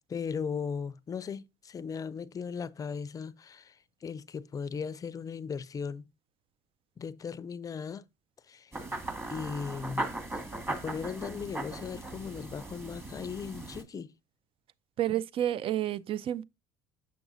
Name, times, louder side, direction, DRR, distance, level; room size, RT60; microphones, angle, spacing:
voice 1, 0.1-6.1 7.0-8.1 8.5-8.7 9.3-14.1, left 6 dB, 30° left, 0.5 m, -38 dB
sound 1, 8.7-13.8, right 2 dB, 20° right, 1.7 m, -38 dB
voice 2, 15.0-16.4, right 12 dB, 45° right, 0.4 m, -30 dB
7.1 x 6.0 x 2.6 m
supercardioid pair, 95°, 13 cm